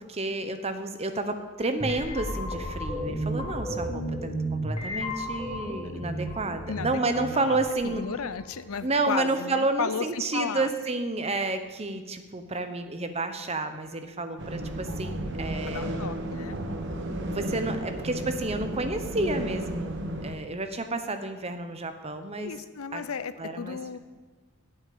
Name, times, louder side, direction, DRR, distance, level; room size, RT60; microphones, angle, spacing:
voice 1, 0.0-8.0 8.8-16.0 17.2-22.5 22.9-23.0 23.4-24.0, right 2 dB, 30° right, 8 dB, 0.9 m, -30 dB
sound 1, 1.8-8.7, equal, 25° left, 1.4 m, -33 dB
voice 2, 7.8-10.7 15.7-16.6 22.4-24.0, left 6 dB, 80° left, 14 dB, 0.6 m, -34 dB
sound 2, 14.4-20.4, right 1 dB, 55° right, 1.2 m, -33 dB
8.9 x 8.2 x 8.5 m, 1.4 s
head